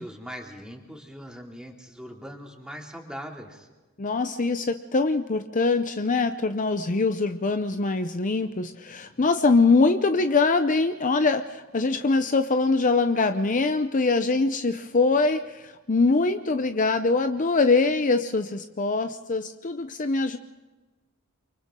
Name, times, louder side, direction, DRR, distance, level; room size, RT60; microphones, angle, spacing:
voice 1, 0.0-3.7, equal, 5° right, 1 dB, 2.7 m, -40 dB
voice 2, 4.0-20.4, left 3 dB, 40° left, 9 dB, 0.7 m, -23 dB
30.0 x 24.0 x 3.8 m, 1.2 s
head